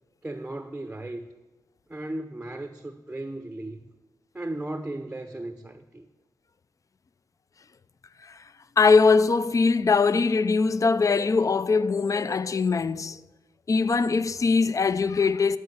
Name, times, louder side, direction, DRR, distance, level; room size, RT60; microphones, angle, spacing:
voice 1, 0.2-1.3 1.9-3.8 4.3-6.1, right 1 dB, 15° right, 0.6 m, -36 dB
voice 2, 8.8-13.2 13.7-15.6, left 4 dB, 45° left, 0.4 m, -21 dB
12.5 x 4.8 x 8.6 m
wide cardioid pair, 85°, 8 cm